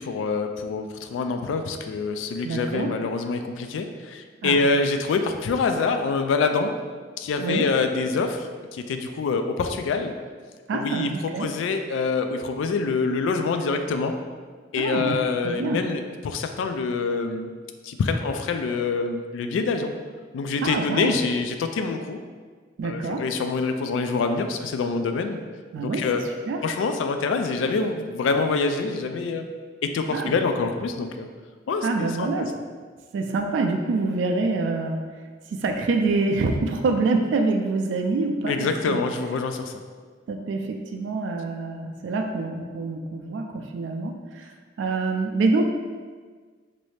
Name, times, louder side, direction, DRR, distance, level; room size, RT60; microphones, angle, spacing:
voice 1, 0.0-6.7 7.2-10.1 10.7-14.1 14.7-17.5 17.8-19.9 20.3-22.2 22.8-25.4 25.8-26.2 26.6-29.4 29.8-31.3 31.7-32.5 38.5-39.7, left 4 dB, 85° left, 7 dB, 0.3 m, -26 dB
voice 2, 2.4-2.9 4.4-4.6 7.4-7.7 10.7-11.5 14.8-15.8 20.6-21.2 22.8-23.2 25.7-26.1 26.5-26.6 30.1-30.4 31.8-32.5 33.1-35.1 35.5-39.0 40.3-44.5 44.8-45.6, right 3 dB, 70° right, 3 dB, 0.3 m, -26 dB
3.1 x 2.6 x 3.2 m, 1.5 s
head